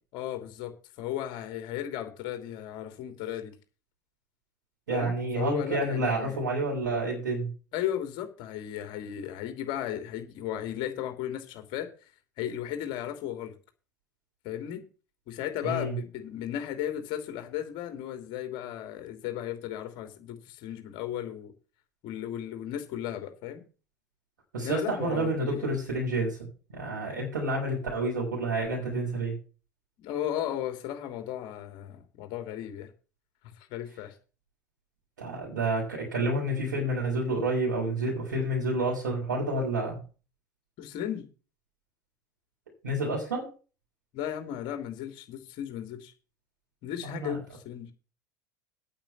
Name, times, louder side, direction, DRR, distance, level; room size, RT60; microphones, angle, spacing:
voice 1, 0.1-3.6 4.9-6.4 7.7-11.9 12.4-13.6 14.4-14.8 15.3-21.5 22.0-23.6 24.6-25.7 30.0-32.9 33.7-34.1 40.8-41.3 44.1-46.1 46.8-47.9, left 11 dB, 60° left, 6 dB, 2.9 m, -35 dB
voice 2, 4.9-7.5 15.6-15.9 24.5-26.4 26.7-29.4 35.2-40.0 42.8-43.5 47.0-47.4, right 2 dB, 80° right, -3 dB, 5.3 m, -29 dB
9.0 x 7.4 x 8.5 m, 0.36 s
hypercardioid pair, 75°, 10 cm